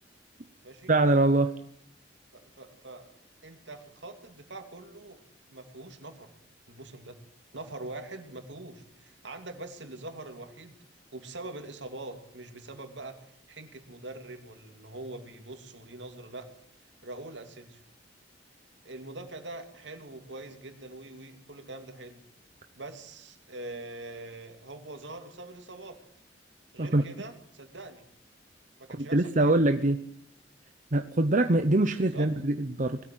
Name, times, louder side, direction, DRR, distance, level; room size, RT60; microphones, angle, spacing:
voice 1, 0.9-1.5 26.8-27.0 29.0-30.0 30.9-33.0, right 2 dB, 45° right, 7 dB, 1.0 m, -23 dB
voice 2, 2.3-3.1 3.4-5.2 5.5-6.3 6.7-7.2 7.5-10.8 11.1-16.5 17.0-17.8 18.8-22.2 22.8-26.0 26.7-28.0 28.8-29.5 32.1-32.3, right 2 dB, 75° right, 6 dB, 2.9 m, -43 dB
20.5 x 13.5 x 9.4 m, 0.68 s
head